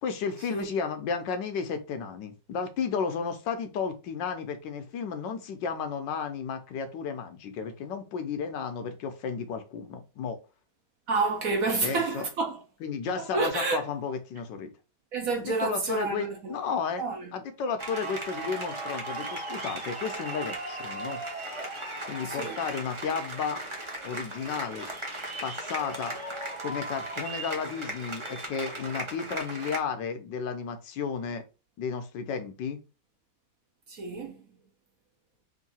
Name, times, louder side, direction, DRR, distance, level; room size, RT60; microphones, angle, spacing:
voice 1, 0.0-10.4 11.7-12.3 12.8-14.7 15.4-17.0 17.3-21.2 22.1-23.6 24.0-24.9 25.4-26.2 26.6-31.4 31.8-32.8, left 6 dB, 75° left, 1.3 m, -33 dB
voice 2, 11.1-12.6 13.2-13.8 15.1-16.5 17.0-17.2 22.2-22.6 33.9-34.4, right 3 dB, 60° right, 1.0 m, -29 dB
sound 1, 17.8-29.8, right 2 dB, 35° right, 0.5 m, -37 dB
3.7 x 2.6 x 4.1 m
omnidirectional pair, 2.0 m